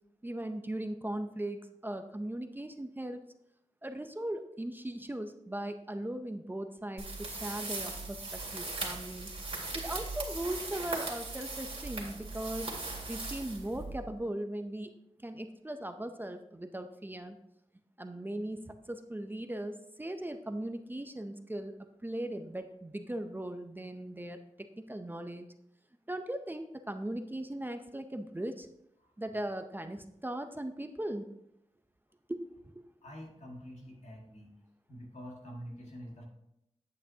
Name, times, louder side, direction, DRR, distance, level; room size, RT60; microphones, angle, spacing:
voice 1, 0.2-3.2 3.8-9.3 9.7-12.7 13.1-14.9 15.2-17.4 18.0-21.7 22.0-25.4 26.1-28.7 29.2-31.3 32.3-32.8, right 1 dB, 15° right, 7 dB, 0.6 m, -38 dB
sound 1, 7.0-14.1, right 3 dB, 55° right, 2.2 m, -39 dB
voice 2, 33.0-34.6 34.9-36.2, equal, 70° left, 0 dB, 1.9 m, -46 dB
9.4 x 8.3 x 2.8 m, 0.80 s
wide cardioid pair, 95°, 12 cm